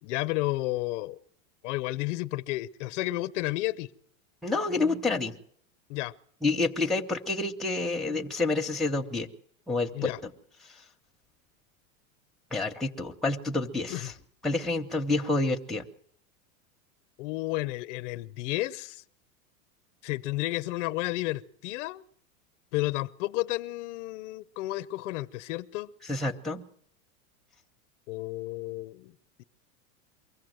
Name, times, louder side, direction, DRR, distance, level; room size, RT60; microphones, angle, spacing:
voice 1, 0.0-1.2 1.6-3.9 5.9-6.1 9.9-10.2 13.9-14.1 17.2-19.0 20.0-22.0 22.7-25.9 28.1-29.4, left 18 dB, 60° left, 0.7 m, -32 dB
voice 2, 4.4-5.4 6.4-9.3 9.7-10.3 12.5-14.1 14.4-15.8 26.1-26.7, left 3 dB, ahead, 0.8 m, -28 dB
23.5 x 15.5 x 7.9 m
supercardioid pair, 140°, 40 cm